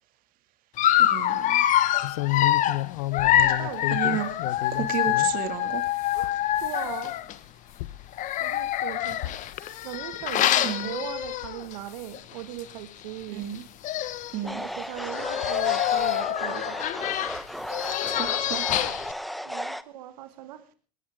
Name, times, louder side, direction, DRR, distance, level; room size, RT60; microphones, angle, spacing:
Dog, 0.8-7.4 8.1-11.7 12.1-12.3 12.6-12.7 13.6-13.7 13.8-14.4 15.0-19.1, left 12 dB, 40° left, 1.4 m, -25 dB
voice 1, 1.0-1.6 3.5-3.6 3.9-4.3 4.7-5.8 10.6-10.9 13.3-13.7 14.3-14.7 18.1-18.6, right 11 dB, 40° right, 9 dB, 2.4 m, -32 dB
sound 1, 2.0-5.4 5.8-9.9 10.3-10.7 11.2-11.6 11.8-12.1 12.8-12.9 13.2-13.3 14.4-14.5 15.3-16.1 17.3-17.5 17.8-17.9 18.2-18.3, left 17 dB, 60° left, 0.8 m, -33 dB
voice 2, 3.4-3.9 6.1-7.2 8.4-9.3 9.8-13.4 14.4-16.9 19.4-20.7, right 13 dB, 70° right, 9 dB, 2.0 m, -39 dB
sound 2, 14.5-19.8, equal, ahead, 0.9 m, -34 dB
20.5 x 17.0 x 3.7 m, 0.36 s
hypercardioid pair, 115°, 21 cm